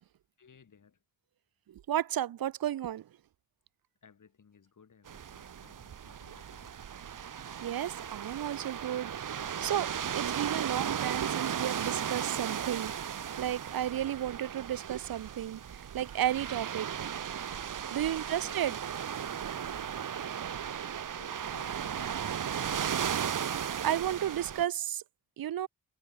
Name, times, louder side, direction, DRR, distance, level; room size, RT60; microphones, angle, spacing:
voice 1, 0.4-1.0 4.0-6.8 17.8-18.7 19.3-20.4 21.2-23.1 23.9-24.3, left 6 dB, 60° left, 5.9 m, -59 dB
voice 2, 1.7-3.0 7.6-9.1 9.6-9.9 10.2-17.1 17.9-18.8 23.8-25.0 25.4-25.7, right 11 dB, 80° right, 0.9 m, -33 dB
sound 1, 5.1-24.7, right 8 dB, 60° right, 1.4 m, -36 dB
cardioid pair, 80°, 35 cm